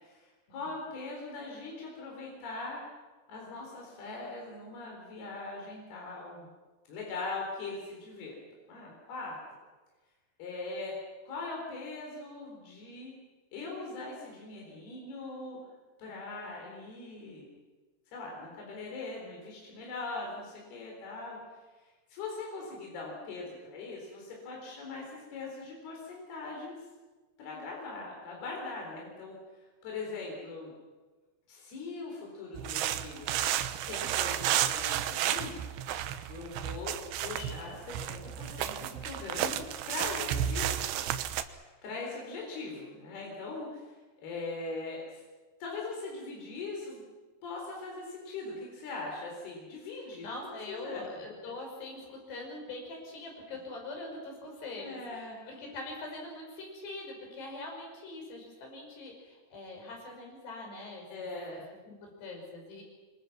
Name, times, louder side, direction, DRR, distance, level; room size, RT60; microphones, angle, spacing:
voice 1, 0.0-2.8 3.3-6.5 6.9-8.4 8.7-9.3 10.4-10.9 11.3-13.1 13.5-15.6 16.0-17.5 18.1-21.4 22.1-23.5 23.7-26.8 27.4-29.4 29.8-30.7 31.5-33.4 33.9-35.6 36.3-40.7 41.8-45.2 45.6-47.0 47.4-51.0 54.8-55.4 61.1-61.6, left 3 dB, 70° left, -1 dB, 6.1 m, -41 dB
sound 1, 32.6-41.4, right 11 dB, 90° right, 3.1 m, -32 dB
voice 2, 50.2-61.1 61.9-62.8, left 2 dB, 85° left, 1 dB, 7.8 m, -43 dB
27.0 x 25.0 x 6.0 m, 1.3 s
omnidirectional pair, 4.7 m